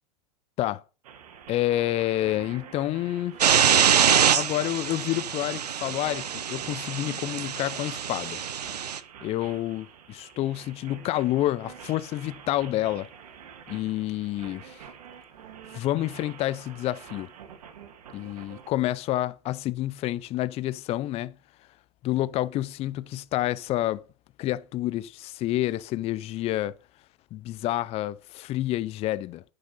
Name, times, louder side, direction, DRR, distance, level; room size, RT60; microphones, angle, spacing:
sound 1, 1.0-18.7, right 8 dB, 70° right, 2.0 m, -47 dB
voice 1, 1.5-3.4 4.3-8.4 9.2-13.1 13.7-14.8 15.7-17.3 18.1-21.3 22.0-24.0 24.4-26.7 27.3-29.4, left 14 dB, 30° left, 0.5 m, -28 dB
sound 2, 3.4-9.0, right 8 dB, 85° right, 0.7 m, -24 dB
9.5 x 6.6 x 5.4 m
hypercardioid pair, 100°, 20 cm